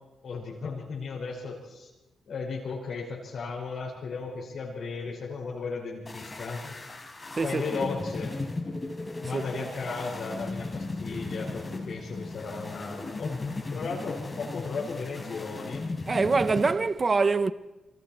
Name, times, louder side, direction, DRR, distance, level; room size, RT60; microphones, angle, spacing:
voice 1, 0.2-1.9 2.3-6.8 7.4-8.4 9.2-13.4 13.7-15.9, left 4 dB, 65° left, 5.4 m, -35 dB
sound 1, 6.1-16.7, left 3 dB, 25° left, 4.1 m, -36 dB
voice 2, 7.4-7.9 9.3-9.6 16.1-17.5, right 4 dB, 35° right, 1.0 m, -25 dB
28.0 x 23.5 x 4.5 m
cardioid pair, 90°, 0 cm